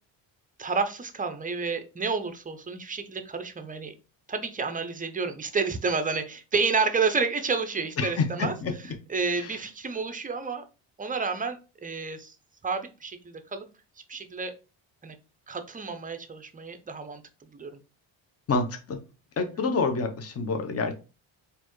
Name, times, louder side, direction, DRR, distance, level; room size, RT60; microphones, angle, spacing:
voice 1, 0.6-3.9 4.3-10.6 11.0-12.3 12.6-13.7 14.1-14.5 15.0-15.1 15.5-17.8 19.4-19.7, right 4 dB, 20° right, 9 dB, 0.5 m, -30 dB
voice 2, 8.0-8.7 9.4-9.5 18.5-19.0 19.4-20.9, left 4 dB, 30° left, 6 dB, 0.7 m, -27 dB
4.2 x 2.6 x 3.0 m, 0.33 s
cardioid pair, 90°, 49 cm